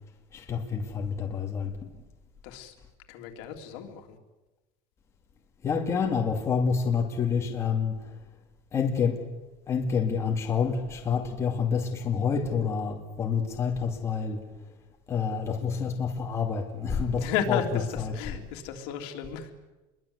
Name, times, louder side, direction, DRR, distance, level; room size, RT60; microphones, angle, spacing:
voice 1, 0.3-1.9 5.6-8.2 8.7-9.2 9.7-14.5 15.1-18.1, left 6 dB, 20° left, 2.5 m, -28 dB
voice 2, 2.4-2.7 3.1-4.2 17.1-19.5, left 7 dB, 75° left, 3.2 m, -33 dB
26.5 x 23.0 x 8.2 m
cardioid pair, 170°, 13 cm